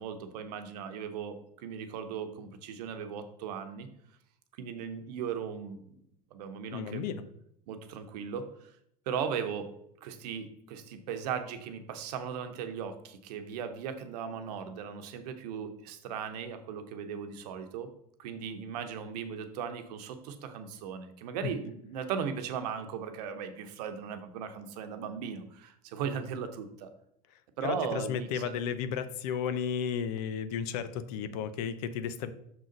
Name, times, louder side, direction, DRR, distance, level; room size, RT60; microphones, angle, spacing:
voice 1, 0.0-3.9 4.6-5.8 6.3-7.0 7.7-8.7 9.1-9.7 10.0-17.9 18.2-26.9 27.6-28.6, right 7 dB, 75° right, 8 dB, 0.9 m, -37 dB
voice 2, 6.7-7.3 21.4-21.5 27.6-32.3, left 7 dB, 70° left, 12 dB, 0.7 m, -33 dB
6.3 x 3.9 x 5.2 m, 0.73 s
hypercardioid pair, 90°, 21 cm